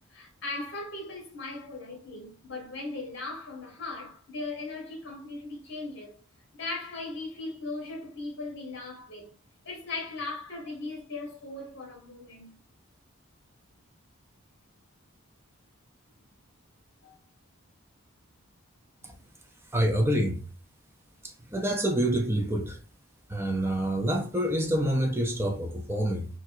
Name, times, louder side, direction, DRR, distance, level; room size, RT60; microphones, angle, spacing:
voice 1, 0.1-6.1 6.5-9.3 9.6-12.5 17.0-17.2 19.0-19.3, left 3 dB, 55° left, 1.5 m, -38 dB
voice 2, 19.7-20.4 21.5-22.8 23.3-26.3, right 1 dB, 10° right, 0.5 m, -27 dB
4.4 x 2.3 x 2.6 m
head